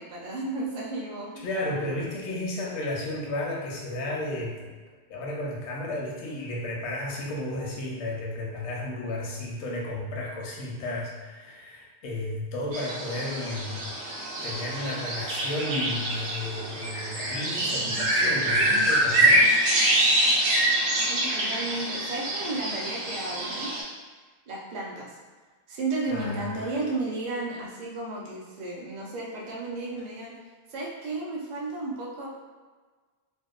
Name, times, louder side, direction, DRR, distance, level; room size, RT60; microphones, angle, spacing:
voice 1, 0.0-1.4 1.8-1.9 20.9-23.8 24.5-25.2 25.7-30.3 30.7-32.3, right 2 dB, 50° right, -4 dB, 0.6 m, -33 dB
voice 2, 1.4-4.8 5.1-14.0 14.4-19.6 26.1-26.7, left 1 dB, 80° left, -2 dB, 0.8 m, -33 dB
sound 1, 12.7-23.8, right 1 dB, 85° right, 0.9 m, -25 dB
2.7 x 2.1 x 2.3 m, 1.4 s
omnidirectional pair, 1.1 m